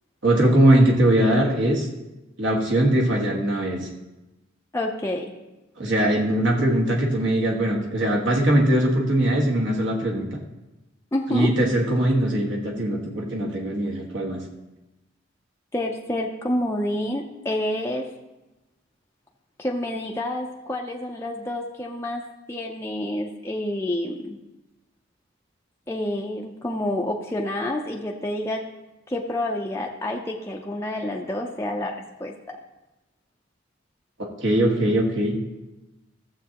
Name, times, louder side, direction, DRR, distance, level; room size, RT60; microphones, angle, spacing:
voice 1, 0.2-1.9 2.4-3.8 5.8-10.3 11.3-14.4 34.4-35.4, right 1 dB, 65° right, -1 dB, 1.6 m, -21 dB
voice 2, 4.7-5.3 11.1-11.5 15.7-18.1 19.6-24.4 25.9-28.7 29.1-32.6, left 1 dB, 15° left, -1 dB, 0.5 m, -28 dB
15.0 x 7.2 x 2.9 m, 1.0 s
head